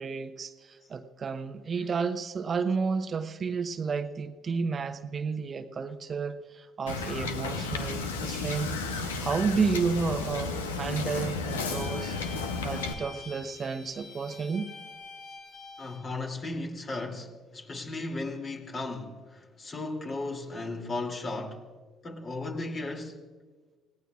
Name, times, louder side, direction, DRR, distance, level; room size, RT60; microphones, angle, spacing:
voice 1, 0.0-12.2 12.4-14.7, right 5 dB, 40° right, 0.8 m, -31 dB
Wind / Boat Water vehicle, 6.9-12.9, left 4 dB, 80° left, 1.0 m, -33 dB
Bowed string instrument, 11.4-16.1, left 4 dB, 60° left, 3.6 m, -46 dB
voice 2, 15.8-21.6 22.0-23.2, left 2 dB, 40° left, 2.8 m, -35 dB
27.5 x 17.5 x 2.5 m
figure-of-eight pair, 50°, 0 cm